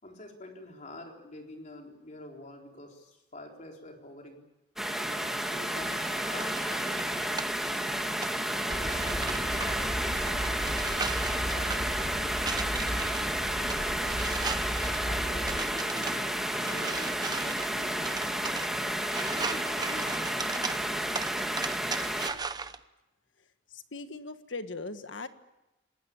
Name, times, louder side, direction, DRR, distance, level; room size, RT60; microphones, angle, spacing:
voice 1, 0.0-4.4 5.0-8.0 8.5-11.2 11.5-14.2 15.0-18.7 19.3-20.5, left 1 dB, 40° left, 2 dB, 4.1 m, -47 dB
sound 1, 4.8-22.3, right 1 dB, ahead, 1.8 m, -31 dB
sound 2, 5.8-22.8, right 5 dB, 20° right, 0.8 m, -39 dB
sound 3, 8.7-15.6, equal, 55° right, 6.5 m, -37 dB
voice 2, 23.7-25.3, left 3 dB, 75° left, 9 dB, 1.6 m, -39 dB
27.0 x 19.5 x 8.6 m, 0.98 s
head